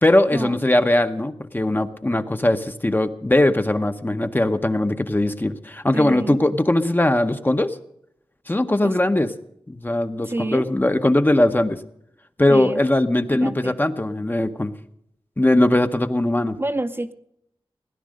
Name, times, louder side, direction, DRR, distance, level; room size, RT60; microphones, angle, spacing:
voice 1, 0.0-7.8 8.5-9.3 9.7-11.8 12.4-14.7 15.4-16.6, left 1 dB, 20° left, 8 dB, 0.8 m, -20 dB
voice 2, 5.9-6.4 8.8-9.0 10.2-10.7 12.5-12.8 13.3-13.8 16.6-17.1, right 2 dB, 25° right, 8 dB, 0.7 m, -28 dB
17.0 x 11.0 x 6.4 m, 0.76 s
wide cardioid pair, 90°, 10 cm